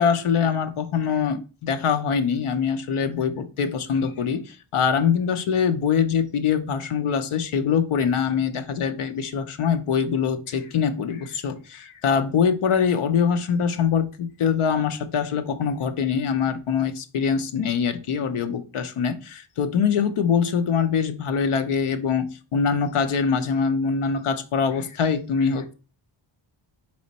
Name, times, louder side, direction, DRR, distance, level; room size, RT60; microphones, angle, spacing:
voice 1, 0.0-25.7, left 6 dB, 80° left, 0.7 m, -23 dB
4.1 x 3.1 x 4.0 m
wide cardioid pair, 85°, 50 cm